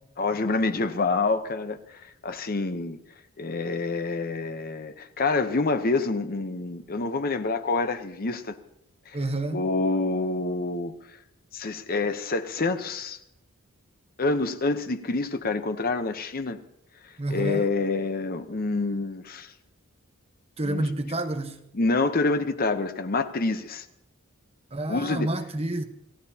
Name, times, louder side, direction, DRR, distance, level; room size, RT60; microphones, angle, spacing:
voice 1, 0.2-1.8 2.2-3.0 3.4-8.6 9.1-9.2 9.5-11.0 11.5-13.2 14.2-16.6 17.3-19.5 20.6-20.9 21.7-23.9 24.9-25.3, left 3 dB, 45° left, 0.8 m, -27 dB
voice 2, 9.1-9.7 17.2-17.7 20.6-21.6 24.7-25.8, right 2 dB, 25° right, 1.1 m, -29 dB
28.0 x 15.5 x 2.8 m
head